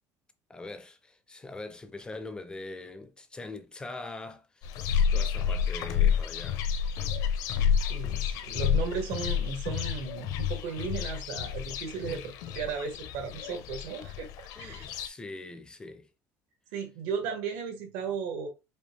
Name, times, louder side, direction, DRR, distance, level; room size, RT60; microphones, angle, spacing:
voice 1, 0.5-6.6 12.0-12.2 13.5-13.6 14.6-16.1, left 2 dB, 10° left, 0.4 m, -43 dB
sound 1, 4.6-15.1, left 8 dB, 60° left, 0.6 m, -29 dB
voice 2, 7.9-14.3 14.6-14.9 16.7-18.5, right 6 dB, 85° right, 1.5 m, -35 dB
5.2 x 2.3 x 3.2 m
cardioid pair, 160°, 7 cm